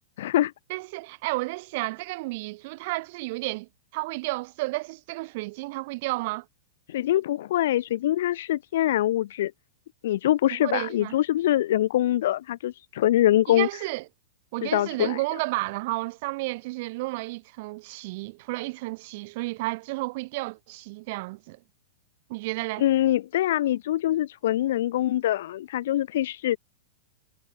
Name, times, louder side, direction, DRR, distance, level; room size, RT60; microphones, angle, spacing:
voice 1, 0.2-0.5 6.9-9.5 10.0-13.7 14.6-15.2 22.8-26.6, left 13 dB, 60° left, 0.3 m, -24 dB
voice 2, 0.7-6.4 10.6-11.1 13.5-14.0 14.5-21.6 22.3-22.8, right 23 dB, 45° right, 2.7 m, -32 dB
supercardioid pair, 160°, 0 cm